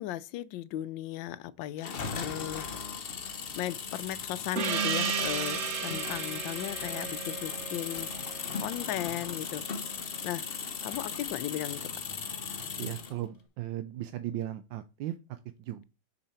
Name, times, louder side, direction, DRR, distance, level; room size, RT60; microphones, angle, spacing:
voice 1, 0.0-2.7 3.5-8.1 8.6-9.6 10.2-10.5 10.8-11.9, left 13 dB, 80° left, 1.3 m, -36 dB
sound 1, 1.8-13.2, left 6 dB, 45° left, 0.7 m, -38 dB
Gong, 4.6-9.6, right 7 dB, 55° right, 0.8 m, -34 dB
voice 2, 12.8-15.8, right 13 dB, 80° right, 1.3 m, -37 dB
6.8 x 5.5 x 4.3 m
omnidirectional pair, 2.1 m